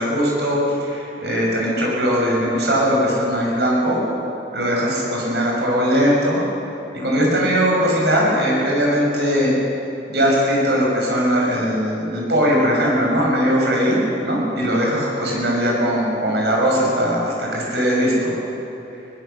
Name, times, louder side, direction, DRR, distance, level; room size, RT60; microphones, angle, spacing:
voice 1, 0.0-4.0 4.5-6.4 7.0-9.6 10.1-14.0 14.2-18.3, equal, 75° right, -3 dB, 6.9 m, -19 dB
21.0 x 19.5 x 7.0 m, 2.9 s
head